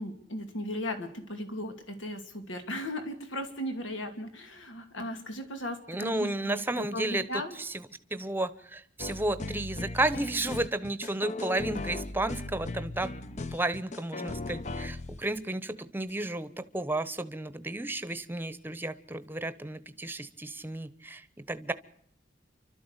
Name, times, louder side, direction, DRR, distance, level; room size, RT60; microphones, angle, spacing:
voice 1, 0.0-7.6, left 1 dB, 90° left, 7 dB, 2.4 m, -37 dB
voice 2, 5.9-7.7 8.1-13.1 13.5-21.7, right 2 dB, 10° right, 14 dB, 0.9 m, -32 dB
sound 1, 9.0-15.4 16.1-16.2, left 2 dB, 40° left, 0.8 m, -37 dB
29.0 x 12.5 x 8.1 m, 0.70 s
head